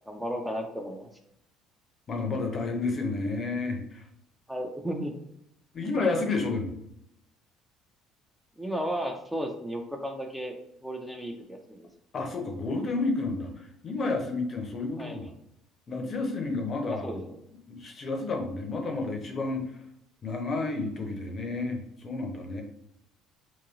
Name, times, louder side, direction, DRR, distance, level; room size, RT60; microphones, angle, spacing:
voice 1, 0.1-1.1 4.5-5.1 8.6-10.6 10.8-11.9 15.0-15.3 16.9-17.4, equal, 5° right, 2 dB, 0.4 m, -34 dB
voice 2, 2.1-4.0 5.7-6.7 12.1-15.2 15.9-17.2 17.7-19.6 20.2-22.6, left 3 dB, 40° left, 2 dB, 0.6 m, -31 dB
3.0 x 2.7 x 2.4 m, 0.76 s
figure-of-eight pair, 55°, 0 cm